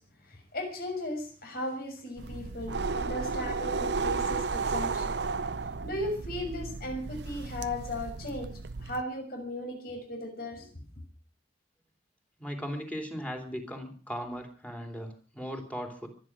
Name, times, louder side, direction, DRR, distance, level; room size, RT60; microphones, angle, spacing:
voice 1, 0.3-5.1 5.8-8.5 8.8-10.7, left 1 dB, 55° left, 3 dB, 6.4 m, -36 dB
sound 1, 2.2-9.0, right 4 dB, 70° right, 0.7 m, -33 dB
voice 2, 12.4-16.1, equal, 10° left, 3 dB, 3.4 m, -38 dB
24.0 x 9.9 x 6.1 m, 0.41 s
head